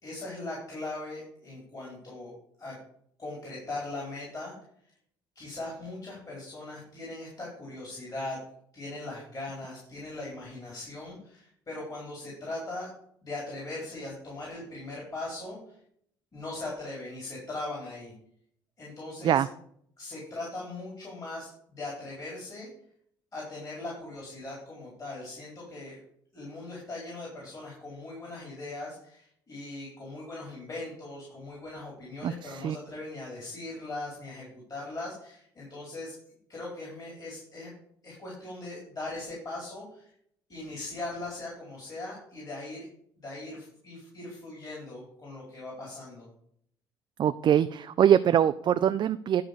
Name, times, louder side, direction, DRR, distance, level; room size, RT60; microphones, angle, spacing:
voice 1, 0.0-2.3 2.6-2.8 3.2-4.5 5.3-8.4 8.7-12.9 13.2-15.6 16.3-18.1 18.8-19.4 20.0-22.7 23.3-26.0 26.3-36.1 36.5-37.7 38.0-40.1 40.5-42.9 43.2-46.3, left 2 dB, 35° left, -4 dB, 4.4 m, -39 dB
voice 2, 32.2-32.8 47.2-49.4, right 9 dB, 40° right, 11 dB, 0.4 m, -23 dB
11.5 x 4.0 x 6.7 m, 0.66 s
figure-of-eight pair, 55°, 12 cm